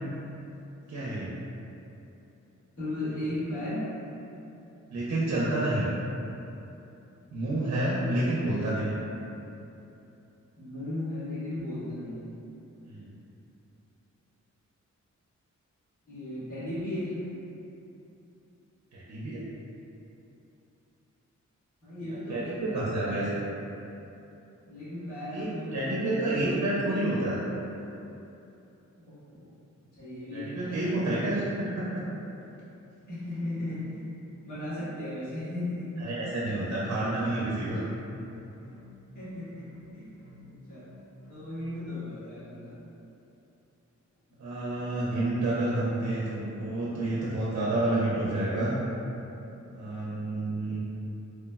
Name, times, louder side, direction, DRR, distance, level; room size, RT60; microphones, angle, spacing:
voice 1, 0.9-1.3 4.9-5.9 7.3-8.9 12.9-13.1 18.9-19.4 22.1-23.2 25.3-27.4 30.3-31.5 31.7-32.0 36.0-37.8 44.4-48.7 49.7-50.8, right 1 dB, 60° right, -7 dB, 0.4 m, -29 dB
voice 2, 2.7-3.8 8.1-8.8 10.6-12.3 16.1-17.2 21.8-23.5 24.7-27.3 29.0-29.5 29.9-31.2 33.1-36.0 39.1-40.2 40.4-40.9 41.3-42.8, left 1 dB, 90° left, -14 dB, 1.3 m, -36 dB
sound 1, 38.2-42.0, left 1 dB, 55° left, 0.6 m, -52 dB
3.0 x 2.0 x 2.2 m, 2.8 s
wide cardioid pair, 125°, 30 cm